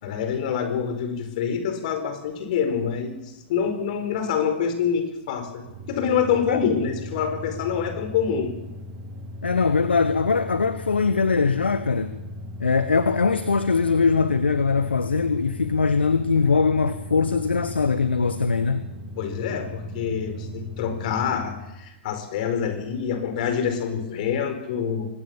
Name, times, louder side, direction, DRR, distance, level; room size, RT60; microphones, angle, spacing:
voice 1, 0.0-8.5 19.2-25.1, left 7 dB, 45° left, 8 dB, 4.8 m, -26 dB
sound 1, 5.6-21.7, left 1 dB, 35° right, 2.8 m, -38 dB
voice 2, 9.4-12.1 12.6-18.9, left 4 dB, 75° left, 12 dB, 1.4 m, -21 dB
25.0 x 19.5 x 7.3 m, 0.94 s
figure-of-eight pair, 105°, 6 cm